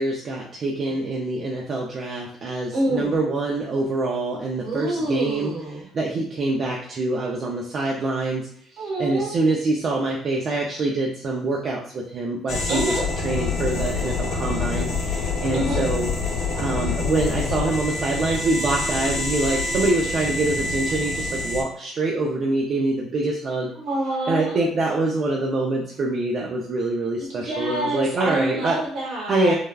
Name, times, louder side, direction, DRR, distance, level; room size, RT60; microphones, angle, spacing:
voice 1, 0.0-5.5 5.9-8.5 8.7-16.1 16.6-23.7 24.3-28.8 29.3-29.5, right 2 dB, 45° right, -1 dB, 0.4 m, -25 dB
voice 2, 2.7-3.1 4.5-5.9 8.8-9.4 12.7-13.1 15.5-15.8 23.7-24.7 27.2-29.5, right 1 dB, 65° right, -3 dB, 1.3 m, -27 dB
sound 1, 12.5-21.6, left 3 dB, 65° left, 0.7 m, -26 dB
3.3 x 2.2 x 2.3 m, 0.64 s
cardioid pair, 110°, 0 cm